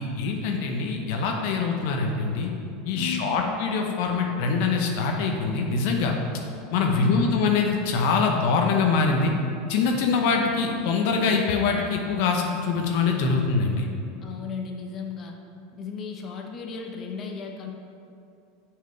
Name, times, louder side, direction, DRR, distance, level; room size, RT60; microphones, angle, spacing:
voice 1, 0.0-2.5 2.8-6.1 6.7-9.3 9.7-13.9, left 4 dB, 65° left, 2 dB, 0.9 m, -24 dB
voice 2, 3.0-3.6 7.0-7.4 14.2-15.3 15.8-17.7, left 4 dB, 35° left, 1 dB, 0.9 m, -35 dB
6.2 x 4.9 x 6.6 m, 2.6 s
supercardioid pair, 115°, 0 cm